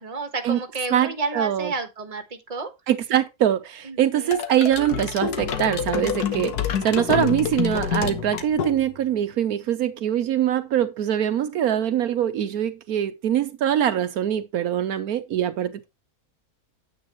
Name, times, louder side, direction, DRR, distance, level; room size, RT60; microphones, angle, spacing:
voice 1, 0.0-2.7 3.9-4.4, right 3 dB, 25° right, 1.4 m, -30 dB
voice 2, 0.9-1.7 2.9-15.9, right 10 dB, 75° right, 1.2 m, -23 dB
sound 1, 4.3-9.1, left 7 dB, 90° left, 1.5 m, -27 dB
9.6 x 8.6 x 3.0 m
omnidirectional pair, 1.6 m